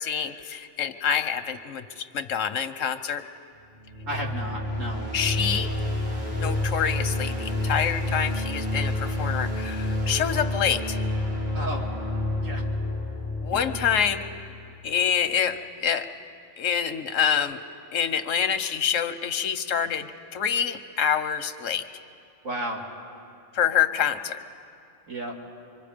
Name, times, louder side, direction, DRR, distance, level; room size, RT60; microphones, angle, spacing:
voice 1, 0.0-3.2 5.1-5.7 6.4-11.0 13.4-14.2 14.8-16.1 16.6-17.6 17.9-21.9 23.5-24.4, left 8 dB, 90° left, 10 dB, 1.2 m, -26 dB
sound 1, 3.8-14.8, left 1 dB, 35° right, 2.8 m, -29 dB
voice 2, 4.1-5.0 11.5-11.8 12.4-12.6 13.5-13.9 22.4-22.8 25.1-25.4, right 1 dB, 85° right, -2 dB, 2.9 m, -33 dB
26.0 x 24.0 x 5.1 m, 2.4 s
omnidirectional pair, 1.3 m